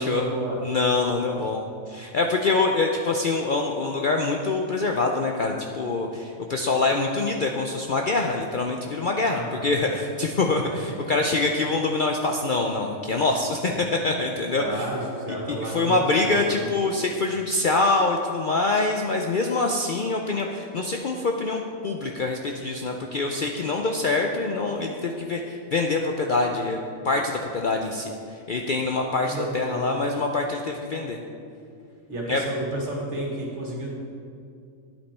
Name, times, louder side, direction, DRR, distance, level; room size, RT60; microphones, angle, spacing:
voice 1, 0.0-0.6 9.3-9.8 10.6-11.0 13.7-13.9 14.6-16.8 29.3-30.0 32.1-33.9, right 1 dB, 60° right, -2 dB, 2.1 m, -32 dB
voice 2, 0.6-14.9 15.5-31.2 32.3-32.4, left 3 dB, 55° left, 2 dB, 0.6 m, -25 dB
10.0 x 8.6 x 4.3 m, 2.5 s
omnidirectional pair, 1.4 m